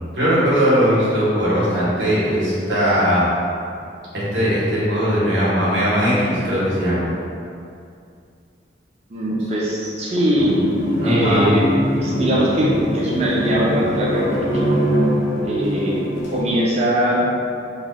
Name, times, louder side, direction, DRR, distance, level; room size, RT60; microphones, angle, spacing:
voice 1, 0.0-3.3 4.1-7.1 11.0-11.5, equal, 70° right, -10 dB, 1.0 m, -19 dB
voice 2, 9.1-10.6 11.0-11.7 12.0-14.7 15.4-16.0 16.3-17.3, equal, 35° right, -5 dB, 0.5 m, -21 dB
sound 1, 10.4-16.4, equal, 90° left, 0.6 m, -22 dB
2.3 x 2.3 x 3.4 m, 2.4 s
head